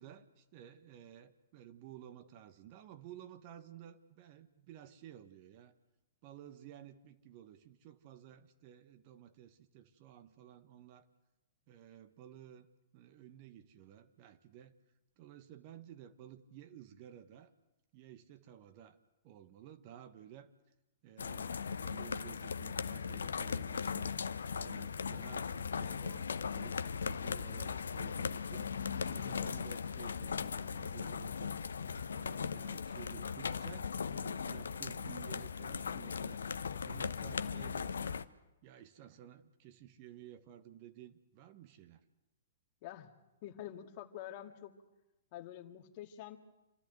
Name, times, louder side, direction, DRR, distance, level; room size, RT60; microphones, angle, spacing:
voice 1, 0.0-5.7 6.2-11.1 11.7-12.7 12.9-14.7 15.2-17.5 17.9-19.0 19.2-20.5 21.0-24.2 24.6-28.7 29.0-31.5 32.1-36.4 36.8-38.2 38.6-42.0, right 11 dB, 40° right, 8 dB, 1.5 m, -54 dB
sound 1, 21.2-38.2, left 6 dB, 65° left, 0.8 m, -38 dB
voice 2, 42.8-43.1 43.4-44.7 45.3-46.4, left 12 dB, 40° left, 5 dB, 2.1 m, -47 dB
27.0 x 14.0 x 8.0 m, 0.99 s
figure-of-eight pair, 110°, 0 cm